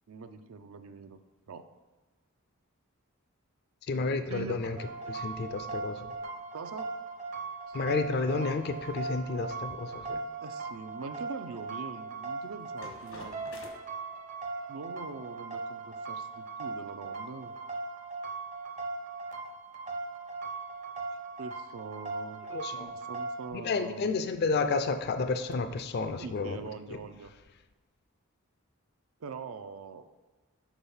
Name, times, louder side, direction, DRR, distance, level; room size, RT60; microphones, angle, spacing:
voice 1, 0.1-1.2 1.5-1.7 4.3-4.8 6.5-6.9 7.7-7.8 10.4-13.6 14.7-17.5 21.4-22.5 22.8-24.1 26.2-27.3 29.2-30.1, right 4 dB, 75° right, 9 dB, 0.5 m, -43 dB
voice 2, 3.9-4.8 5.1-6.1 7.7-10.2 22.5-22.9 23.5-26.6, left 4 dB, 50° left, 9 dB, 0.4 m, -31 dB
sound 1, 4.8-23.5, right 3 dB, 35° right, 0.6 m, -39 dB
sound 2, 6.6-13.7, left 2 dB, 85° left, 1.1 m, -53 dB
6.1 x 3.4 x 5.5 m, 1.2 s
head